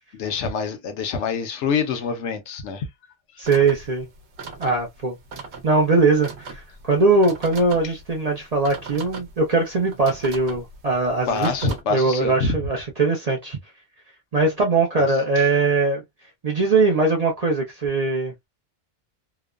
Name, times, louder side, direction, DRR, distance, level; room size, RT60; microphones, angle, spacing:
voice 1, 0.1-2.9 11.3-12.6 15.0-15.1 15.4-15.5, left 5 dB, 75° left, 1.0 m, -26 dB
voice 2, 3.4-4.1 4.6-5.2 5.6-11.5 11.9-13.6 14.3-16.0 16.4-18.3, right 3 dB, 45° right, 0.5 m, -21 dB
sound 1, 3.4-11.8, right 4 dB, 70° right, 1.0 m, -40 dB
2.9 x 2.0 x 2.3 m
omnidirectional pair, 1.2 m